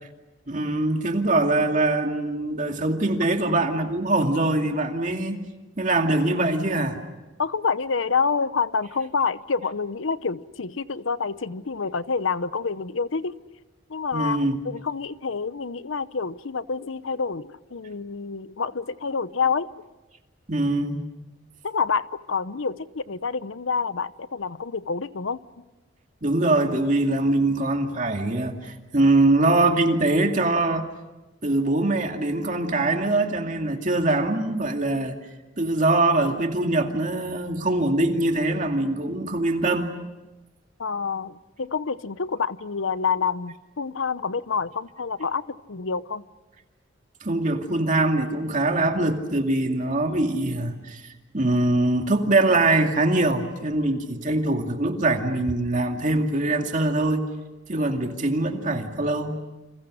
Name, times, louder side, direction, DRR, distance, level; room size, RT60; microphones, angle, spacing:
voice 1, 0.5-5.4 5.8-7.0 14.1-14.6 20.5-21.1 26.2-30.9 31.4-35.2 35.6-39.9 47.2-51.0 51.3-57.3 57.7-59.4, right 2 dB, 40° right, 4 dB, 2.4 m, -23 dB
voice 2, 7.4-13.3 13.9-19.7 21.6-25.4 40.8-46.2, left 5 dB, 85° left, 15 dB, 0.8 m, -27 dB
29.5 x 27.5 x 6.4 m, 1.1 s
head